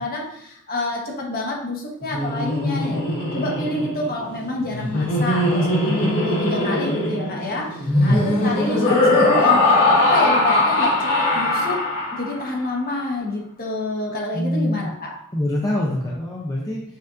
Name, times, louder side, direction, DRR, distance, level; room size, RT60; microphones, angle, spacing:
voice 1, 0.0-3.0 3.3-9.6 9.9-15.1, left 2 dB, 45° left, -1 dB, 1.0 m, -28 dB
Laughter, 2.0-12.5, left 2 dB, 75° left, 1.3 m, -21 dB
voice 2, 7.9-8.2 14.3-14.8 15.3-16.8, left 1 dB, 15° left, -4 dB, 0.5 m, -22 dB
6.4 x 2.5 x 2.5 m, 0.71 s
head